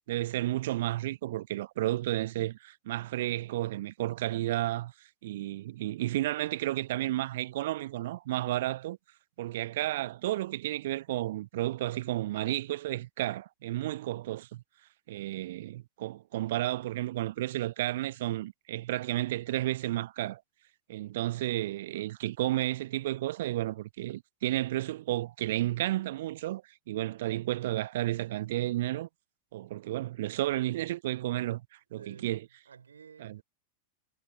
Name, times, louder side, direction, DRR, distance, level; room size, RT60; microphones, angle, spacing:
voice 1, 0.1-4.9 5.2-9.0 9.4-14.6 15.1-20.4 20.9-29.1 29.5-31.7 31.9-32.4 33.2-33.4, right 15 dB, 55° right, 0.9 m, -32 dB
voice 2, 32.0-32.3 32.7-33.4, right 6 dB, 70° right, 3.8 m, -52 dB
figure-of-eight pair, 90°, 0 cm